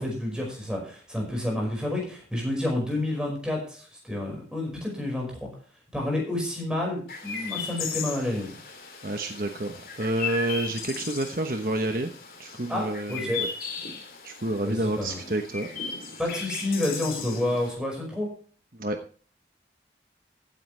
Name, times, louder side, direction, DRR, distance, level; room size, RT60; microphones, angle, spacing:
voice 1, 0.0-5.5 5.9-8.6 12.7-13.4 14.6-15.2 16.2-18.3, left 1 dB, 5° right, -1 dB, 5.4 m, -29 dB
Chirp tweet, 7.1-17.8, left 5 dB, 55° left, 3.3 m, -37 dB
voice 2, 9.0-12.1 12.4-13.5 14.2-15.7 18.8-19.0, right 1 dB, 50° right, 5 dB, 1.1 m, -29 dB
15.5 x 9.5 x 3.4 m, 0.43 s
head